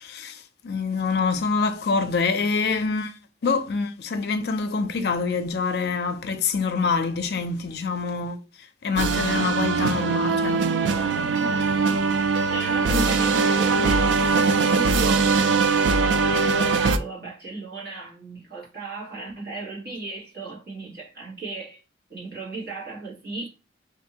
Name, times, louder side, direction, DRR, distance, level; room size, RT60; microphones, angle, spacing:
voice 1, 0.0-3.2 3.4-8.4 8.8-11.2 12.9-13.1, left 4 dB, 55° left, 0.4 m, -26 dB
sound 1, 9.0-17.0, right 4 dB, 75° right, 0.3 m, -21 dB
voice 2, 11.2-11.6 12.5-21.8 22.1-23.5, right 3 dB, 55° right, 1.4 m, -35 dB
2.6 x 2.6 x 2.8 m
head